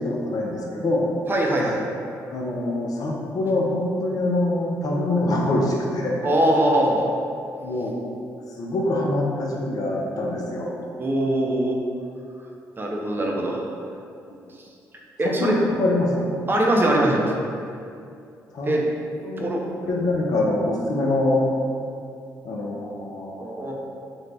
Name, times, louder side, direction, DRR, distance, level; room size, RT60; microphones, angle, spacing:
voice 1, 0.0-1.1 2.3-6.3 7.6-7.9 8.6-10.8 13.2-13.3 15.2-16.3 18.5-18.7 19.2-21.5 22.4-23.6, left 1 dB, 55° left, -2 dB, 0.5 m, -24 dB
voice 2, 1.3-1.8 6.2-7.1 11.0-11.8 12.8-13.6 15.2-15.5 16.5-17.3 18.6-18.8 19.4-19.6 23.4-23.7, right 1 dB, 30° right, -1 dB, 0.5 m, -22 dB
2.5 x 2.1 x 3.2 m, 2.5 s
supercardioid pair, 55°, 8 cm